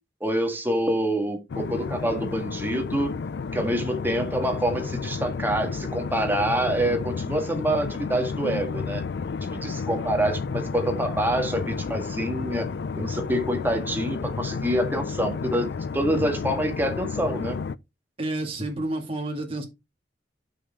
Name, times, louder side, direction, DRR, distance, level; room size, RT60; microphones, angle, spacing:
voice 1, 0.2-3.1 3.5-9.0 9.4-12.7 13.0-17.6, right 1 dB, 10° right, 1.7 m, -26 dB
sound 1, 1.5-17.8, left 5 dB, 70° left, 0.4 m, -31 dB
voice 2, 18.2-19.6, right 2 dB, 30° right, 2.1 m, -30 dB
7.8 x 6.4 x 3.6 m
head